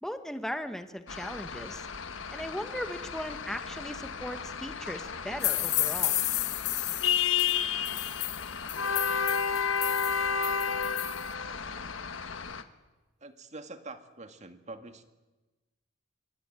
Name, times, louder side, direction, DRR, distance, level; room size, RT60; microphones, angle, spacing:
voice 1, 0.0-1.9 2.3-6.2, equal, ahead, 8 dB, 1.5 m, -38 dB
sound 1, 1.1-12.6, left 6 dB, 80° left, 1.5 m, -32 dB
sound 2, 5.4-11.2, left 13 dB, 40° left, 0.8 m, -32 dB
voice 2, 13.2-15.0, right 2 dB, 35° right, 8 dB, 2.0 m, -45 dB
25.0 x 23.0 x 9.1 m, 1.2 s
head